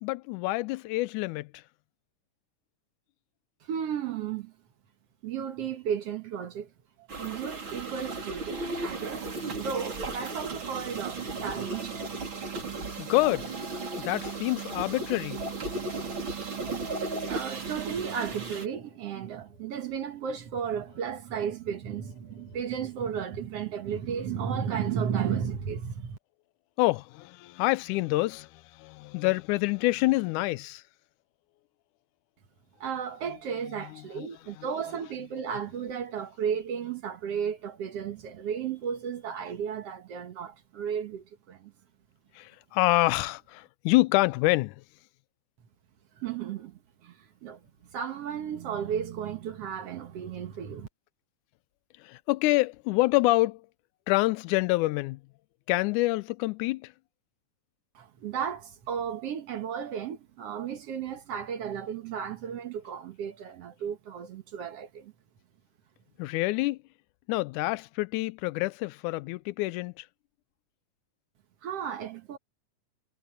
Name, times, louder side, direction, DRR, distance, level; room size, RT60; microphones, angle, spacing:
voice 1, 0.0-1.5 13.0-13.5 14.0-15.4 26.8-30.8 34.2-34.3 42.4-44.8 52.0-53.6 54.1-55.2 55.7-56.9 66.2-66.8 67.3-70.1, left 20 dB, 85° left, 2.0 m, -27 dB
voice 2, 3.6-4.5 5.2-6.7 7.0-9.3 9.5-12.0 17.3-26.2 32.8-41.7 46.2-47.6 47.9-50.9 58.0-65.1 71.6-72.4, right 7 dB, 60° right, 2.0 m, -34 dB
sound 1, 7.1-18.7, right 3 dB, 40° right, 4.4 m, -35 dB
omnidirectional pair, 3.5 m